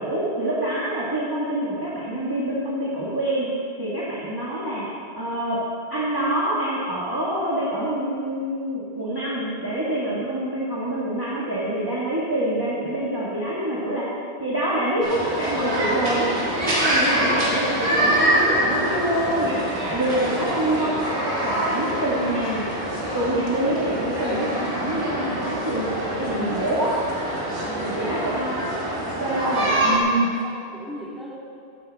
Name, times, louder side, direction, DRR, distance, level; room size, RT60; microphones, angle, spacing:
voice 1, 0.0-3.5 3.8-4.9 5.1-5.6 5.9-14.1 14.4-19.5 19.8-22.6 23.1-26.9 27.8-28.6 29.2-30.3, right 1 dB, 20° right, -8 dB, 1.5 m, -26 dB
sound 1, 15.0-30.0, right 1 dB, 80° right, 2.0 m, -25 dB
voice 2, 27.6-28.5 29.1-29.5 30.4-31.4, equal, ahead, -7 dB, 2.4 m, -38 dB
15.0 x 8.4 x 3.4 m, 2.3 s
omnidirectional pair, 1.1 m